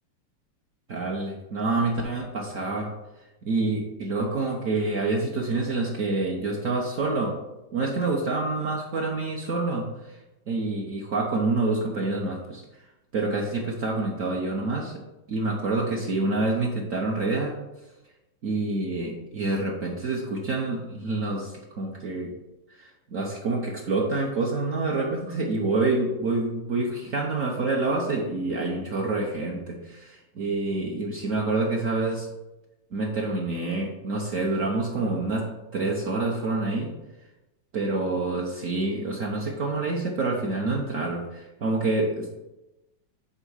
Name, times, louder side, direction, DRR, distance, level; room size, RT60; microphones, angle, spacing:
voice 1, 0.9-2.9 3.4-7.4 7.7-10.2 10.5-12.6 13.1-15.0 15.3-17.5 18.4-22.3 22.8-32.3 32.9-35.4 35.7-36.9 37.7-42.3, right 3 dB, 55° right, -1 dB, 1.1 m, -27 dB
8.2 x 3.5 x 5.5 m, 1.0 s
omnidirectional pair, 1.9 m